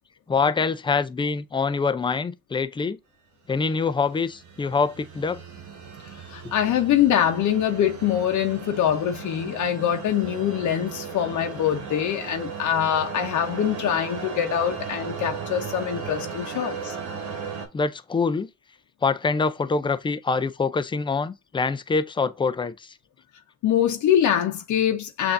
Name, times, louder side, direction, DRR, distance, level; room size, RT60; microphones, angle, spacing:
voice 1, 0.3-3.0 3.5-5.4 17.7-18.5 19.0-22.9, left 4 dB, 15° left, 0.4 m, -25 dB
sound 1, 3.6-17.7, right 6 dB, 80° right, 1.2 m, -36 dB
voice 2, 6.3-17.0 23.6-25.3, left 10 dB, 75° left, 0.8 m, -24 dB
6.8 x 2.7 x 2.5 m
cardioid pair, 90°, 30 cm